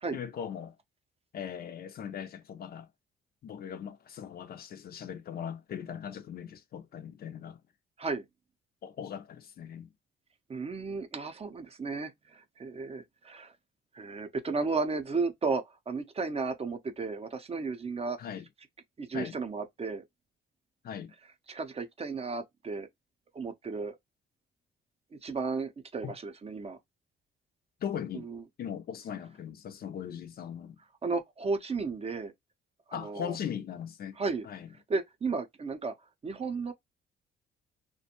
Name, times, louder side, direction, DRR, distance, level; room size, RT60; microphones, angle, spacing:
voice 1, 0.1-0.8 1.3-2.9 3.4-7.6 8.8-9.9 18.2-18.5 19.1-19.4 20.8-21.1 26.0-26.1 27.8-28.3 28.6-30.8 32.9-34.2 34.4-34.7, left 8 dB, 50° left, 0.4 m, -39 dB
voice 2, 10.5-13.5 13.9-18.2 19.0-20.0 21.5-22.9 23.3-24.0 25.1-26.8 28.1-28.4 31.0-32.3 32.9-33.4 34.2-34.5 34.9-35.9 36.2-36.7, right 4 dB, 30° right, 0.5 m, -34 dB
2.5 x 2.1 x 2.8 m
cardioid pair, 90°, 20 cm